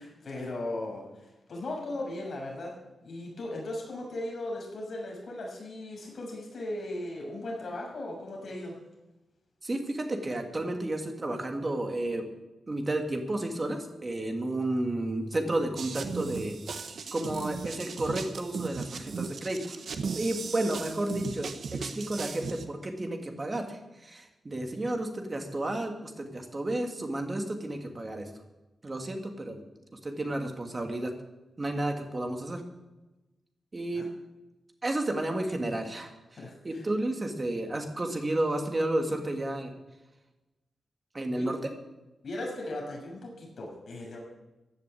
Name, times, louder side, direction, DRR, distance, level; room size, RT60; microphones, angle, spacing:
voice 1, 0.0-8.8 33.9-34.0 36.4-36.8 41.3-41.5 42.2-44.2, left 1 dB, 50° left, 0 dB, 6.5 m, -37 dB
voice 2, 9.6-12.2 12.7-16.6 17.1-19.8 20.2-28.3 28.8-29.6 29.9-31.1 31.6-32.6 33.7-34.1 34.8-36.1 36.6-39.7 41.1-41.7, right 1 dB, 25° right, 4 dB, 2.4 m, -32 dB
sound 1, 15.8-22.7, right 5 dB, 65° right, 1.4 m, -37 dB
15.5 x 10.5 x 8.6 m, 1.0 s
wide cardioid pair, 150°, 0 cm